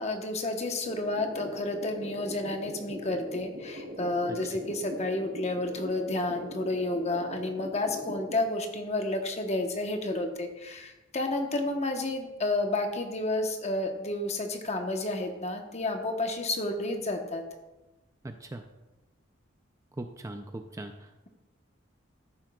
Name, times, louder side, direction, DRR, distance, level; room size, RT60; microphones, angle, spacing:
voice 1, 0.0-17.4, left 2 dB, 35° left, 4 dB, 1.0 m, -31 dB
sound 1, 0.8-8.4, equal, 80° right, 2.5 m, -41 dB
voice 2, 18.2-18.6 20.0-21.3, right 2 dB, 15° right, 6 dB, 0.4 m, -40 dB
14.0 x 7.5 x 2.3 m, 1.1 s
head